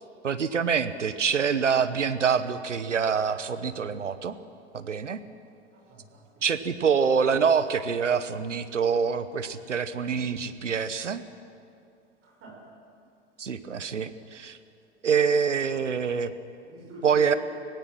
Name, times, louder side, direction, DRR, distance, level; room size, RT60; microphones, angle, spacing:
voice 1, 0.2-4.4 4.7-5.2 6.4-11.2 13.4-14.6 15.0-16.3 17.0-17.3, right 6 dB, 85° right, 13 dB, 1.1 m, -25 dB
voice 2, 5.7-6.4 12.2-12.6 16.6-17.4, right 3 dB, 35° right, -1 dB, 5.5 m, -46 dB
25.5 x 17.5 x 6.2 m, 2.5 s
figure-of-eight pair, 95°, 36 cm